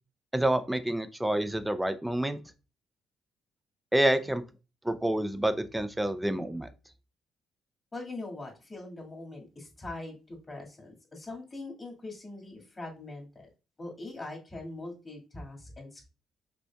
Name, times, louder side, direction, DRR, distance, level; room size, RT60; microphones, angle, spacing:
voice 1, 0.3-2.4 3.9-4.4 4.8-6.7, right 1 dB, 10° right, 11 dB, 0.5 m, -28 dB
voice 2, 7.9-13.5 13.8-16.1, left 2 dB, 30° left, -1 dB, 2.0 m, -42 dB
5.2 x 3.3 x 2.3 m, 0.31 s
supercardioid pair, 65°, 0 cm